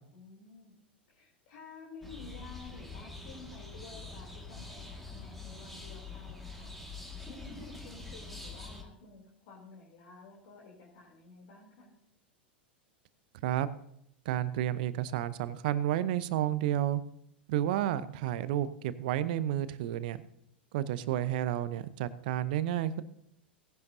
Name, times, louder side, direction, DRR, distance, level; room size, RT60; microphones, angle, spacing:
voice 1, 0.1-0.7 1.1-6.8 7.3-11.9, left 4 dB, 55° left, -4 dB, 3.1 m, -51 dB
sound 1, 2.0-8.8, left 3 dB, ahead, 1.9 m, -45 dB
voice 2, 14.3-17.0 17.5-20.2 20.7-23.0, right 12 dB, 55° right, 15 dB, 0.7 m, -31 dB
18.0 x 10.5 x 2.7 m, 0.73 s
figure-of-eight pair, 90°, 6 cm